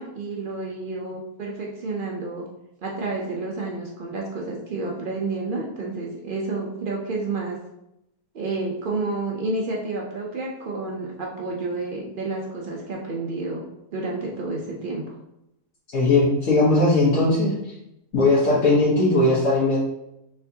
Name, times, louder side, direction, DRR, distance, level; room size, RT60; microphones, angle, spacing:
voice 1, 0.0-2.4 2.8-7.6 8.3-13.6 13.9-15.0, right 3 dB, 70° right, -2 dB, 0.5 m, -30 dB
voice 2, 15.9-17.7 18.1-19.8, left 2 dB, 60° left, -9 dB, 1.4 m, -19 dB
4.4 x 3.4 x 2.7 m, 0.86 s
omnidirectional pair, 1.6 m